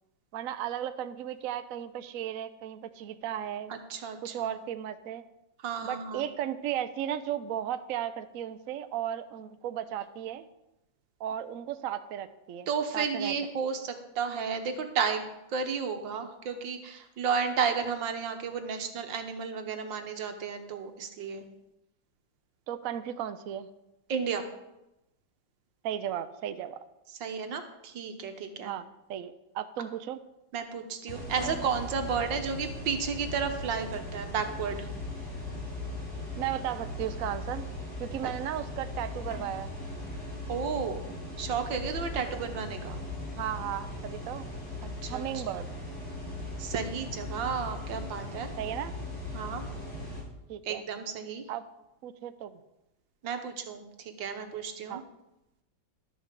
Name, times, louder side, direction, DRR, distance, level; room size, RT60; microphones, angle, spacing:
voice 1, 0.3-3.7 4.2-5.2 5.8-10.5 11.2-13.3 22.7-23.7 25.8-26.8 28.6-28.8 29.1-30.2 36.4-37.7 38.0-39.7 43.4-44.5 45.1-45.7 48.6-48.9 50.5-50.8 51.5-51.6 52.0-52.5 54.9-55.0, right 10 dB, 65° right, 11 dB, 0.9 m, -35 dB
voice 2, 3.7-4.5 5.6-6.2 12.7-21.4 24.1-24.4 27.2-28.7 30.5-34.9 38.2-38.3 40.5-41.0 41.4-43.0 44.8-45.4 46.6-48.5 49.3-49.6 50.7-51.5 53.2-53.9 54.2-55.0, right 6 dB, 80° right, 7 dB, 1.8 m, -32 dB
sound 1, 31.1-50.2, left 1 dB, 40° left, 3.4 m, -38 dB
12.0 x 6.4 x 6.8 m, 0.92 s
omnidirectional pair, 2.0 m